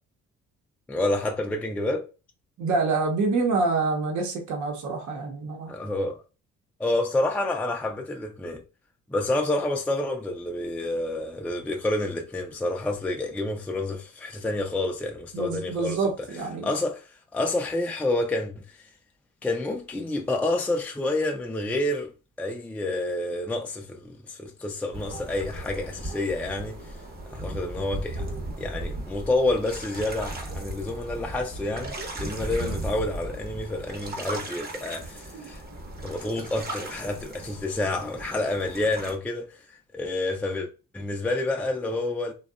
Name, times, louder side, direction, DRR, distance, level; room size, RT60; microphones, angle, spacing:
voice 1, 0.9-2.0 5.7-6.2 6.8-8.6 9.1-16.1 16.6-18.9 19.4-22.1 22.4-27.0 27.3-35.6 36.0-39.7 39.9-40.7 40.9-42.3, left 2 dB, 5° left, 0.4 m, -29 dB
voice 2, 2.6-5.7 15.3-16.7 32.6-32.7 35.3-35.5, right 3 dB, 75° right, 0.8 m, -27 dB
sound 1, 24.9-39.2, right 1 dB, 30° right, 0.8 m, -37 dB
2.7 x 2.2 x 2.3 m
cardioid pair, 90°, 30 cm